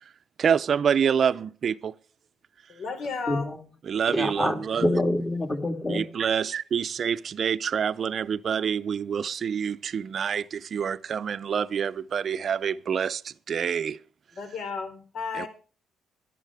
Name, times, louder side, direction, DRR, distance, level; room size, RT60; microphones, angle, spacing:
voice 1, 0.4-2.0 3.8-4.9 5.9-14.0 15.3-15.5, right 7 dB, 55° right, 0.6 m, -27 dB
voice 2, 2.7-3.5 14.4-15.5, left 4 dB, 65° left, 3.9 m, -33 dB
voice 3, 3.3-3.6 4.1-6.0, left 1 dB, 20° left, 3.2 m, -26 dB
12.5 x 11.0 x 4.9 m
cardioid pair, 90°, 0 cm